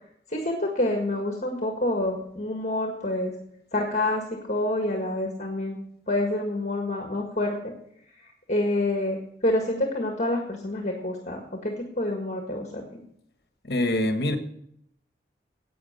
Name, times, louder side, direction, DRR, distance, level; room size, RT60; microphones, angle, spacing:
voice 1, 0.3-3.3 3.7-4.2 4.5-5.8 6.1-7.7 8.5-13.0, left 1 dB, 40° left, 2 dB, 1.7 m, -27 dB
voice 2, 13.6-14.4, left 1 dB, 65° left, 8 dB, 1.3 m, -24 dB
11.0 x 8.5 x 6.7 m, 0.70 s
head